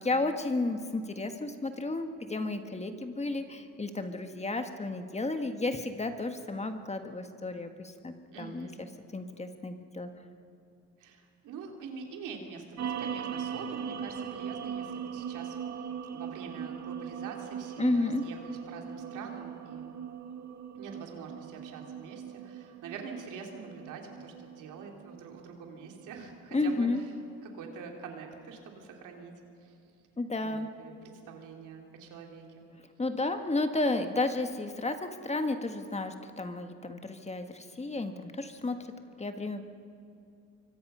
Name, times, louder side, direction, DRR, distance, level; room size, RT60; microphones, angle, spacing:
voice 1, 0.0-8.7 9.1-10.1 17.8-18.2 26.5-27.0 30.2-30.7 33.0-38.8 39.2-39.6, left 2 dB, 20° left, 7 dB, 1.6 m, -32 dB
voice 2, 8.3-8.8 11.0-15.5 16.1-19.9 20.7-26.9 27.4-29.3 29.6-29.8 30.4-32.7, right 5 dB, 90° right, 2 dB, 3.2 m, -45 dB
sound 1, 12.8-27.3, right 7 dB, 60° right, 1.7 m, -40 dB
26.0 x 24.0 x 5.6 m, 2.7 s
cardioid pair, 90°, 30 cm